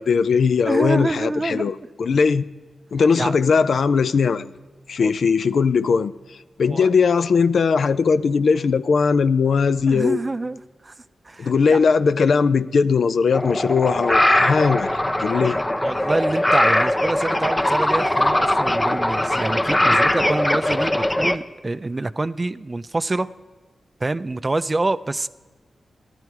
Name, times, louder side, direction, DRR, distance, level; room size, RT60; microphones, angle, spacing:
voice 1, 0.0-2.5 2.9-4.5 4.9-10.2 11.4-15.6, left 5 dB, 70° left, 14 dB, 0.4 m, -19 dB
voice 2, 0.7-1.7 3.1-3.4 5.0-5.1 6.7-6.9 9.9-10.9 11.3-11.8 15.8-23.3 24.0-25.3, right 2 dB, 30° right, 15 dB, 0.4 m, -26 dB
sound 1, 13.3-21.4, left 1 dB, 20° left, 0.6 m, -20 dB
14.5 x 11.0 x 4.6 m, 1.3 s
cardioid pair, 65°, 0 cm